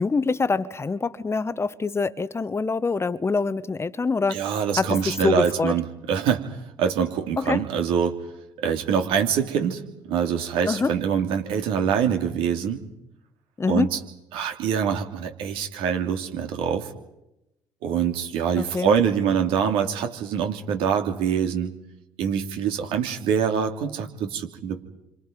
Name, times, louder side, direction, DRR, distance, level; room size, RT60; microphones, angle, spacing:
voice 1, 0.0-4.4 4.8-4.9 5.2-5.7 7.4-7.6 10.6-10.9 13.6-13.9 18.6-18.9, left 4 dB, 25° left, 1.2 m, -25 dB
voice 2, 4.3-6.4 6.8-8.2 8.6-9.8 10.1-12.8 13.7-14.0 14.3-16.9 17.8-21.7 22.2-24.8, right 7 dB, 65° right, 2.9 m, -24 dB
28.5 x 26.5 x 5.3 m
hypercardioid pair, 50°, 10 cm